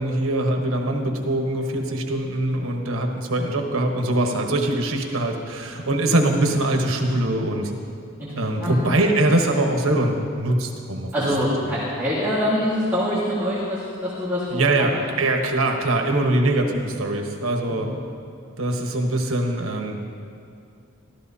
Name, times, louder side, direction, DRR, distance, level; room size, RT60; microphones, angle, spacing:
voice 1, 0.0-7.7 8.3-11.1 11.7-11.8 14.5-17.9 18.6-20.0, right 1 dB, 90° right, 3 dB, 1.2 m, -22 dB
voice 2, 11.1-14.6 14.9-15.0 17.7-18.0, equal, 10° right, -11 dB, 1.6 m, -24 dB
13.5 x 13.0 x 2.8 m, 2.4 s
head